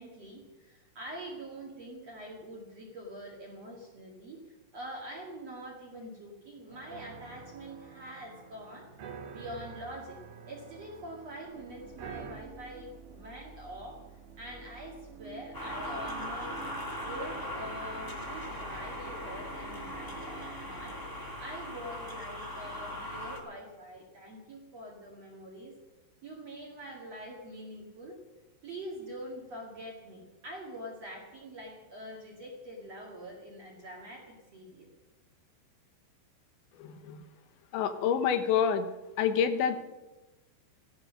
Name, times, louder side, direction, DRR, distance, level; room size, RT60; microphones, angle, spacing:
voice 1, 0.0-8.9 9.3-10.2 10.5-14.0 14.4-16.6 17.0-21.0 21.4-25.7 26.2-28.2 28.6-34.9, equal, 45° right, -3 dB, 2.5 m, -45 dB
sound 1, 6.7-12.3, right 6 dB, 60° right, 3.4 m, -47 dB
sound 2, 11.5-22.2, right 6 dB, 80° right, 3.2 m, -50 dB
sound 3, 15.5-23.4, left 1 dB, 15° left, 0.7 m, -39 dB
voice 2, 36.7-37.2 37.7-38.9 39.2-39.8, left 8 dB, 75° left, 9 dB, 3.2 m, -27 dB
15.0 x 13.0 x 6.4 m, 1.1 s
omnidirectional pair, 5.4 m